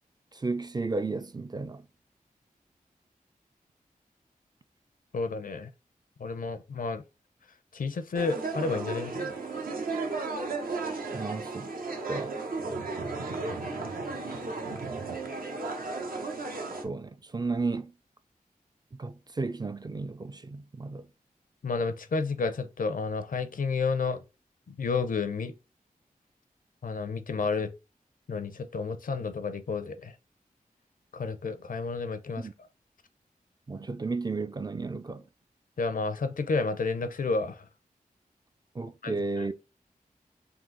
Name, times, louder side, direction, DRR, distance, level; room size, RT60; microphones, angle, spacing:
voice 1, 0.3-1.9 11.1-11.7 12.1-12.4 16.8-17.9 19.0-21.1 32.4-32.5 33.7-35.2 38.8-39.5, right 3 dB, 30° right, 0.3 m, -33 dB
voice 2, 5.1-5.7 6.2-7.0 7.7-9.3 21.6-24.2 24.7-25.5 26.8-27.7 28.3-30.1 31.1-32.5 35.8-37.6 39.0-39.1, left 4 dB, 70° left, 0.5 m, -31 dB
sound 1, 8.1-16.8, right 3 dB, 75° right, 0.8 m, -34 dB
3.8 x 2.7 x 3.8 m
wide cardioid pair, 65°, 15 cm